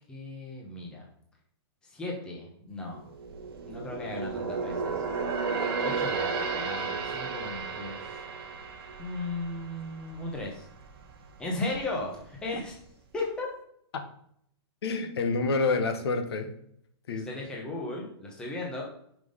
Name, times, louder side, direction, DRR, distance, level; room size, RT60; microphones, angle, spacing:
voice 1, 0.1-1.0 1.8-3.1 3.6-5.0 5.8-8.0 9.0-10.7 11.4-12.8 13.1-13.5 17.1-18.8, left 2 dB, 5° left, -2 dB, 1.0 m, -36 dB
sound 1, 3.0-10.5 10.9-11.1 11.6-12.4 12.7-12.8, right 5 dB, 55° right, 1.3 m, -33 dB
voice 2, 14.8-16.5 17.1-17.3, left 3 dB, 60° left, 7 dB, 1.3 m, -28 dB
6.0 x 5.4 x 5.1 m, 0.69 s
hypercardioid pair, 175°, 15 cm